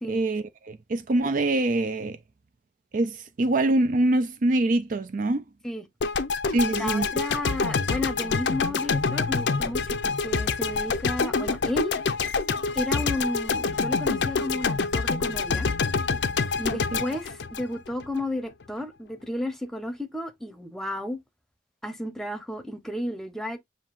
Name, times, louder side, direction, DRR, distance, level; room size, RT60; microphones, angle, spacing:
voice 1, 0.1-2.2 2.9-5.4 6.5-7.1, right 2 dB, 45° right, 0.4 m, -24 dB
sound 1, 6.0-18.2, left 4 dB, 80° left, 0.6 m, -26 dB
voice 2, 6.6-11.9 12.7-15.7 16.6-21.2 21.8-23.6, left 1 dB, 5° left, 0.8 m, -32 dB
7.2 x 2.7 x 2.5 m
head